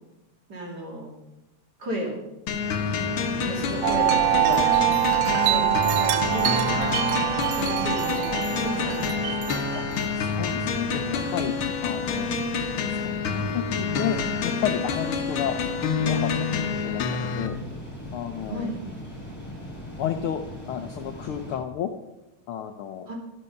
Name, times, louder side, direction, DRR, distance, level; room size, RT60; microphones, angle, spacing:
voice 1, 0.5-1.1 1.8-2.2 3.0-4.7 5.4-7.0 7.5-9.6 18.4-18.8 23.1-23.2, right 1 dB, 35° right, 0 dB, 2.7 m, -34 dB
sound 1, 2.5-17.5, left 5 dB, 60° left, 1.6 m, -28 dB
sound 2, 2.6-21.6, left 1 dB, 15° left, 4.3 m, -39 dB
Wind chime, 3.8-10.3, right 13 dB, 75° right, 2.0 m, -24 dB
voice 2, 10.1-11.6 11.8-12.3 12.9-14.2 14.4-15.6 16.0-17.6 18.1-18.7 20.0-20.4 20.7-21.9 22.5-23.1, left 10 dB, 90° left, 6 dB, 1.2 m, -31 dB
12.5 x 12.0 x 5.7 m, 0.98 s
omnidirectional pair, 3.3 m